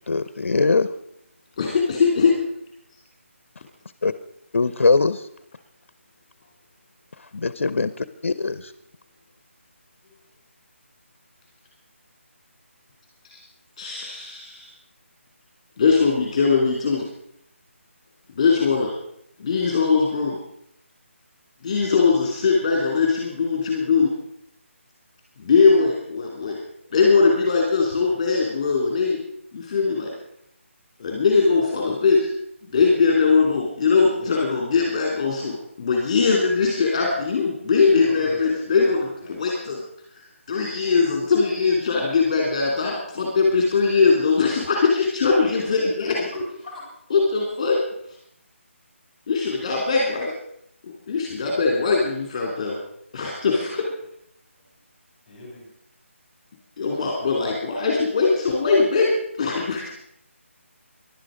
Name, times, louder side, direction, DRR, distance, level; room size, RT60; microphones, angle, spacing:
voice 1, 0.1-0.9 4.0-4.1 4.5-5.3 7.2-8.7, left 3 dB, 65° left, 14 dB, 0.7 m, -21 dB
voice 2, 1.6-2.3 13.3-13.4 13.8-14.7 15.8-17.1 18.3-18.9 19.4-20.4 21.6-24.1 25.4-26.6 26.9-29.2 29.5-30.1 31.0-32.2 32.7-39.8 40.5-46.3 47.1-47.8 49.3-50.3 51.1-52.8 53.1-53.8 56.8-59.1 59.4-59.9, left 4 dB, 25° left, -1 dB, 2.9 m, -21 dB
voice 3, 38.0-39.0 39.2-39.4 46.3-46.8 55.3-55.7, equal, 10° left, -1 dB, 5.8 m, -37 dB
17.0 x 11.5 x 5.1 m, 0.72 s
figure-of-eight pair, 175°, 7 cm